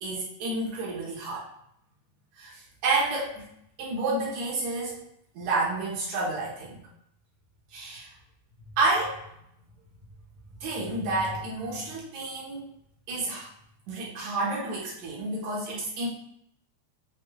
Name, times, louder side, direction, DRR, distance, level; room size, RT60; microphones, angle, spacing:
voice 1, 0.0-1.5 2.3-3.5 3.8-5.0 5.3-6.8 7.7-8.1 8.8-9.2 10.6-12.7 13.1-13.5 13.9-16.1, right 2 dB, 65° right, -5 dB, 2.2 m, -30 dB
6.6 x 2.5 x 2.3 m, 0.75 s
omnidirectional pair, 3.5 m